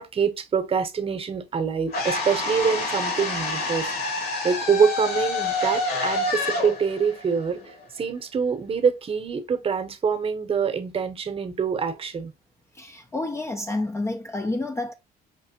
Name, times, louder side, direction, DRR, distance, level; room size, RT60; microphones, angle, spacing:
voice 1, 0.0-3.9 4.4-7.6 8.0-12.3, right 6 dB, 35° right, 0.8 m, -25 dB
sound 1, 1.9-8.0, left 2 dB, 65° left, 1.8 m, -28 dB
voice 2, 12.7-14.9, left 2 dB, 15° left, 0.4 m, -29 dB
5.2 x 3.2 x 2.7 m
cardioid pair, 110°, 17 cm